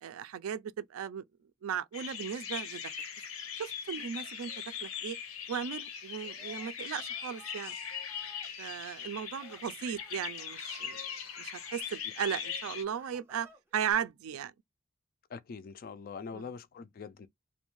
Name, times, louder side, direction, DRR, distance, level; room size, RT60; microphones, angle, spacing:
voice 1, 0.0-1.2 1.6-2.8 3.6-5.2 5.5-7.8 8.6-11.0 11.4-13.5 13.7-14.5 16.3-16.4, right 8 dB, 80° right, 0.3 m, -36 dB
sound 1, 1.9-12.8, left 7 dB, 80° left, 0.6 m, -40 dB
Screaming, 6.1-8.5 9.3-9.6 9.9-12.0 12.5-13.9, right 2 dB, 10° right, 0.6 m, -57 dB
voice 2, 15.3-17.3, left 5 dB, 45° left, 0.3 m, -43 dB
2.6 x 2.2 x 3.0 m
head